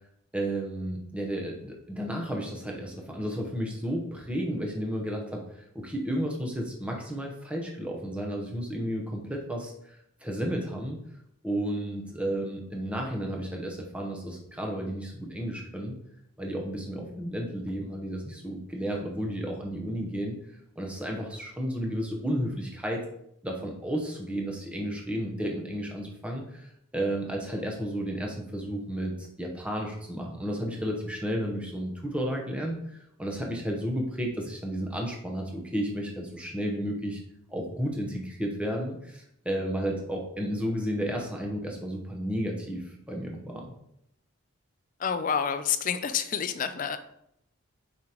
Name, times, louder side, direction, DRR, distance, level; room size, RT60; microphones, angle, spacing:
voice 1, 0.3-5.5 5.7-11.0 11.4-16.0 16.4-20.3 20.8-23.1 23.4-26.7 26.9-37.2 37.5-43.7, equal, 5° right, 0 dB, 0.9 m, -32 dB
voice 2, 45.0-47.0, left 7 dB, 40° left, 11 dB, 0.4 m, -28 dB
7.2 x 5.0 x 3.0 m, 0.77 s
head